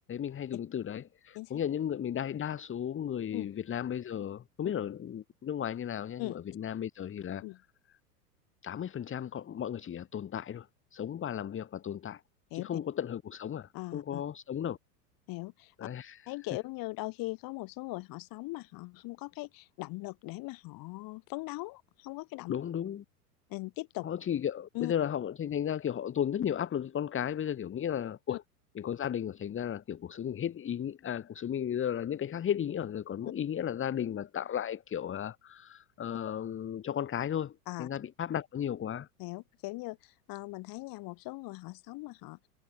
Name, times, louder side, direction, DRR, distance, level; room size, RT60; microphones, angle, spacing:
voice 1, 0.1-7.4 8.6-12.2 12.5-14.8 15.8-16.2 22.5-23.0 24.0-28.4 28.7-37.5 37.8-39.1, left 9 dB, 25° left, 2.8 m, -34 dB
voice 2, 13.7-14.2 15.3-15.9 16.3-22.5 23.5-24.1 24.7-24.9 28.3-28.4 37.7-37.9 39.2-42.4, left 22 dB, 45° left, 4.5 m, -40 dB
hypercardioid pair, 95°, 47 cm